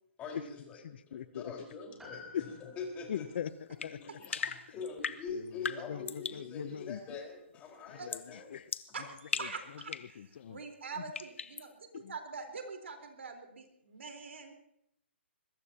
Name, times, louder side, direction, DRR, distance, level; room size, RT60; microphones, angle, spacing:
voice 1, 0.2-3.2 4.0-8.5, left 4 dB, 20° left, 1 dB, 4.5 m, -44 dB
voice 2, 0.8-1.4 2.3-2.4 3.1-4.4 4.7-4.8 5.3-7.0 7.9-8.7 9.4-9.5 9.9-10.3 11.9-12.1, left 9 dB, 55° left, 15 dB, 0.7 m, -41 dB
Piano, 2.0-6.6 6.8-6.9, left 4 dB, 5° right, 5.5 m, -56 dB
sound 1, 3.8-6.5 8.1-8.3 8.7-10.2 11.1-11.7, left 6 dB, 80° left, 1.0 m, -39 dB
voice 3, 8.9-9.9 10.5-14.5, right 4 dB, 80° right, 4 dB, 4.0 m, -44 dB
22.0 x 20.0 x 2.9 m, 0.75 s
hypercardioid pair, 150°, 7 cm